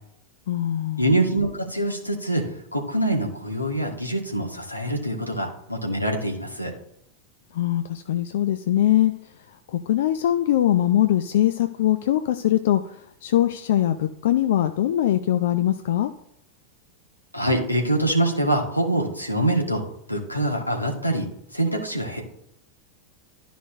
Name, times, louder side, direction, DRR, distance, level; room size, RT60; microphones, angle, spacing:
voice 1, 0.5-1.1 7.5-9.1 9.7-12.8 13.2-16.1, left 12 dB, 55° left, 9 dB, 0.4 m, -22 dB
voice 2, 1.0-6.7 17.3-19.8 20.1-21.3 21.5-22.2, right 1 dB, 90° left, 0 dB, 1.6 m, -24 dB
12.5 x 5.0 x 2.6 m, 0.75 s
figure-of-eight pair, 90°, 0 cm